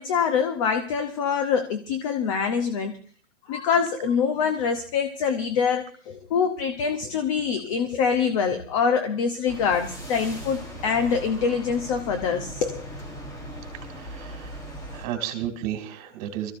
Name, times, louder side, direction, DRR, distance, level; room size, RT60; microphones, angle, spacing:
voice 1, 0.0-3.0 3.5-12.9, left 6 dB, 25° left, 7 dB, 0.9 m, -25 dB
sound 1, 9.5-15.1, right 1 dB, 10° left, 1.3 m, -38 dB
voice 2, 13.8-14.6 14.9-16.5, right 11 dB, 30° right, 6 dB, 2.7 m, -33 dB
24.5 x 14.5 x 2.6 m, 0.42 s
hypercardioid pair, 170°, 36 cm